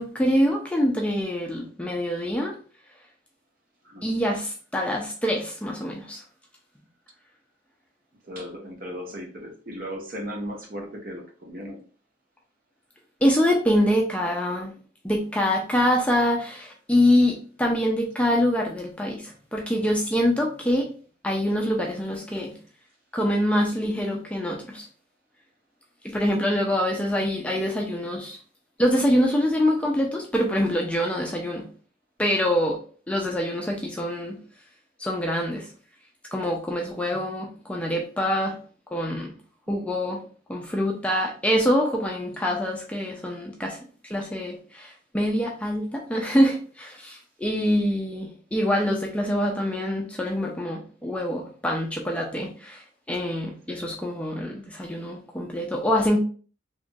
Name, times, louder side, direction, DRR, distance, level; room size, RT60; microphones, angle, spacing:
voice 1, 0.0-2.5 4.0-6.2 13.2-14.7 15.0-20.9 21.2-22.5 23.1-24.9 26.0-28.4 28.8-31.7 32.2-32.8 33.1-34.4 35.0-35.7 36.3-38.6 38.9-39.3 39.7-40.2 40.5-43.8 44.1-52.8 53.1-56.2, equal, 5° left, 0 dB, 0.4 m, -25 dB
voice 2, 8.2-11.8 39.7-39.8 53.7-53.8, equal, 50° right, 2 dB, 0.7 m, -36 dB
2.9 x 2.4 x 2.5 m, 0.40 s
head